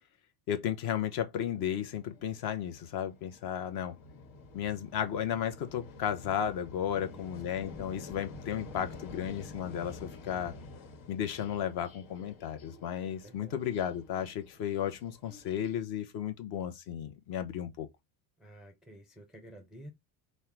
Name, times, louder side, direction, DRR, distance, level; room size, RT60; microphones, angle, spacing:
voice 1, 0.5-4.0 4.5-10.5 11.1-17.9, left 9 dB, 50° left, 0.9 m, -34 dB
sound 1, 1.4-15.8, left 3 dB, 80° left, 1.5 m, -49 dB
voice 2, 7.0-7.4 13.2-13.6 18.4-19.9, right 1 dB, ahead, 0.4 m, -51 dB
5.4 x 2.2 x 4.5 m
cardioid pair, 165°, 47 cm